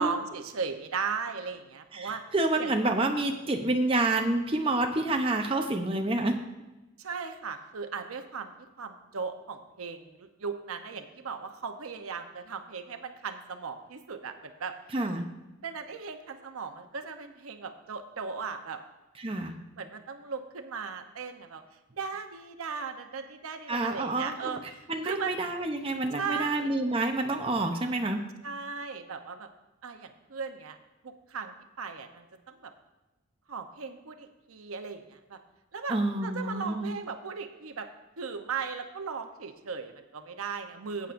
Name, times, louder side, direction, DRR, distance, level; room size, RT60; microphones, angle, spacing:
voice 1, 0.0-2.2 2.6-2.7 7.0-8.5 8.8-14.7 15.6-18.8 19.8-21.6 21.9-25.5 26.2-26.8 28.4-29.5 29.8-30.8 31.0-32.7 33.5-35.4 35.7-37.9 38.2-41.1, right 5 dB, 90° right, 7 dB, 0.8 m, -37 dB
voice 2, 1.9-6.4 14.9-15.3 19.2-19.6 23.7-24.6 24.9-28.2 35.9-36.9, right 2 dB, 25° right, 3 dB, 0.7 m, -28 dB
15.0 x 8.4 x 2.6 m, 1.1 s
head